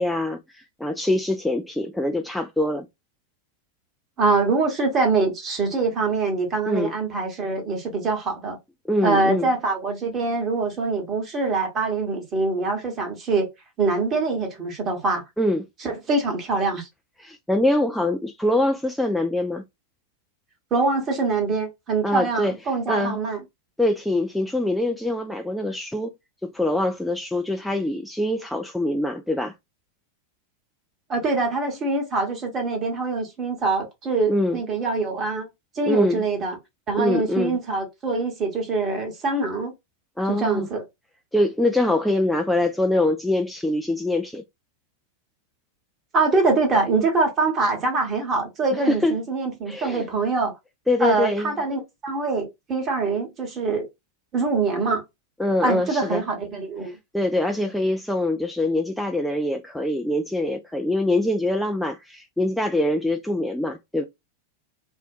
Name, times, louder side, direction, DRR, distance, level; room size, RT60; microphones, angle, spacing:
voice 1, 0.0-2.9 6.7-6.9 8.9-9.5 15.4-15.6 17.2-19.6 22.0-22.5 22.9-23.2 23.8-26.1 26.4-29.5 34.3-34.6 35.9-36.2 37.0-37.6 40.2-40.7 41.3-44.4 48.7-49.2 49.7-50.1 50.9-51.5 55.4-56.2 56.8-64.0, left 1 dB, 5° left, 0.3 m, -24 dB
voice 2, 4.2-8.6 9.0-13.5 13.8-15.2 15.8-16.9 20.7-23.4 31.1-35.5 35.7-36.6 36.9-39.7 40.3-40.8 46.1-50.5 51.0-53.9 54.3-55.0 55.6-57.0, right 3 dB, 25° right, 1.1 m, -24 dB
2.5 x 2.1 x 2.4 m
figure-of-eight pair, 90°, 0 cm